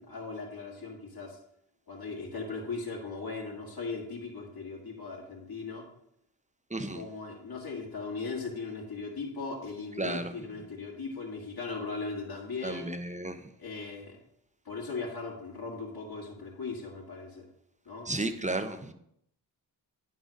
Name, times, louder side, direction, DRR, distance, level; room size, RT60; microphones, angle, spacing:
voice 1, 0.0-1.4 1.9-5.9 6.9-13.0 13.6-14.2 14.7-17.5 17.9-18.1, left 4 dB, 55° left, -2 dB, 2.0 m, -38 dB
voice 2, 6.7-7.0 10.0-10.3 12.6-13.5 18.1-18.9, right 2 dB, 15° right, 9 dB, 0.9 m, -33 dB
9.8 x 4.0 x 5.2 m, 0.72 s
cardioid pair, 50°, 44 cm